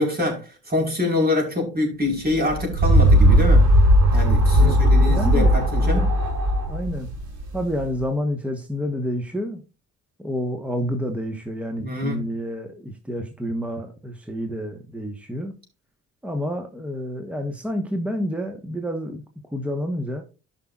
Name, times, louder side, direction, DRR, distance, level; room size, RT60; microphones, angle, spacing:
voice 1, 0.0-3.7 4.1-6.1 11.8-12.3, left 2 dB, 30° right, 4.6 m, -25 dB
sound 1, 2.3-7.9, equal, 85° right, 4.9 m, -17 dB
voice 2, 4.5-5.6 5.8-6.1 6.7-7.1 7.5-9.6 10.2-15.5 16.2-19.2 19.5-20.3, equal, 5° right, 1.3 m, -29 dB
14.0 x 5.8 x 2.4 m
cardioid pair, 90°, 30 cm